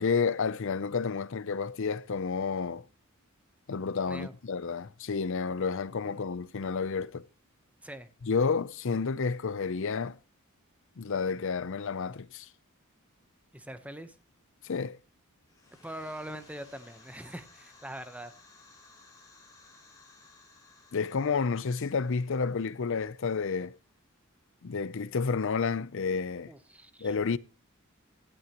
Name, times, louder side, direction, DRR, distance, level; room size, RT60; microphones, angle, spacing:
voice 1, 0.0-2.9 3.7-7.3 8.2-10.2 11.0-12.5 14.6-15.0 20.9-23.8 24.6-26.5 27.0-27.4, left 5 dB, 60° left, 0.6 m, -30 dB
voice 2, 13.5-14.2 15.7-18.3 26.5-27.1, right 1 dB, 5° right, 1.0 m, -43 dB
sound 1, 15.4-24.0, left 3 dB, 15° left, 6.8 m, -58 dB
17.5 x 12.5 x 3.0 m
head